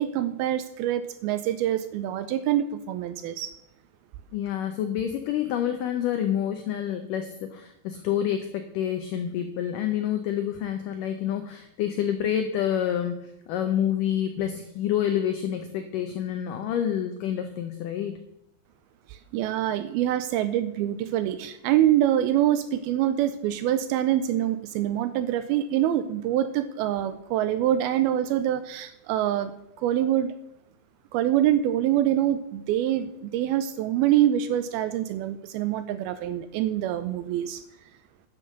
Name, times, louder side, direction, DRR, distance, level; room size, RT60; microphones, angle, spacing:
voice 1, 0.0-3.5 19.1-29.5 29.8-30.3 31.1-37.6, right 12 dB, 80° right, 12 dB, 2.3 m, -25 dB
voice 2, 4.3-18.2, left 10 dB, 85° left, 8 dB, 1.9 m, -28 dB
10.5 x 6.6 x 6.5 m, 0.82 s
omnidirectional pair, 4.7 m